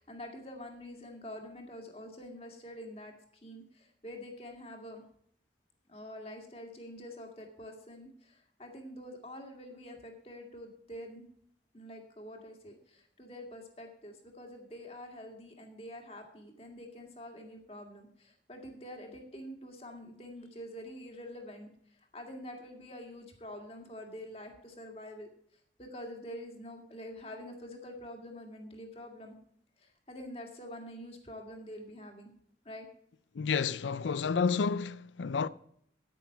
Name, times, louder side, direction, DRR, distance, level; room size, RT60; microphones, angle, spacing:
voice 1, 0.0-3.1 3.4-5.0 5.9-11.3 11.7-21.7 22.1-25.3 25.8-29.4 29.8-32.3 32.7-32.9, left 1 dB, 35° left, 1.9 m, -46 dB
voice 2, 33.3-35.5, left 5 dB, 85° left, 0.5 m, -30 dB
9.3 x 9.2 x 5.7 m
head